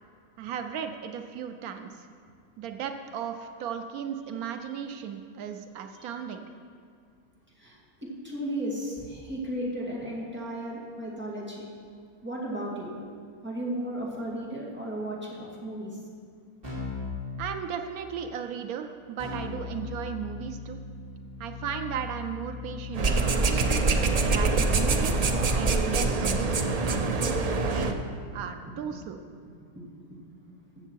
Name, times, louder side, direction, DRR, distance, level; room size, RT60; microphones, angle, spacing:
voice 1, 0.4-2.1 2.6-6.5 17.4-20.8 21.4-23.7 24.1-26.5 26.8-27.9 28.3-29.2, right 8 dB, 85° right, 7 dB, 1.1 m, -36 dB
voice 2, 7.6-11.7 12.2-13.1 13.4-16.0 26.5-26.9 29.8-29.9 30.1-30.2, right 1 dB, 5° right, -5 dB, 2.1 m, -35 dB
Keyboard (musical), 16.6-17.2 19.2-28.1, left 4 dB, 40° right, 3.6 m, -40 dB
sound 1, 22.9-27.9, right 3 dB, 60° right, 0.4 m, -24 dB
14.5 x 6.7 x 4.6 m, 2.3 s
omnidirectional pair, 1.5 m